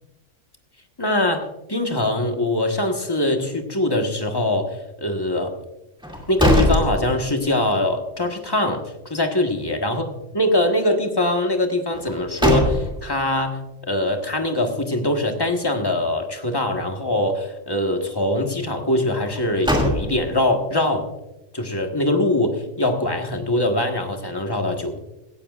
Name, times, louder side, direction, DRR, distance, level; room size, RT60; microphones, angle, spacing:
voice 1, 1.0-5.6 6.3-10.0 10.3-13.6 13.9-21.1 21.5-25.0, left 1 dB, 20° left, 4 dB, 1.4 m, -22 dB
sound 1, 6.0-7.6 8.0-8.1 11.9-13.2 19.2-20.5, equal, 5° right, 2.4 m, -22 dB
17.0 x 15.0 x 2.5 m, 0.97 s
omnidirectional pair, 1.3 m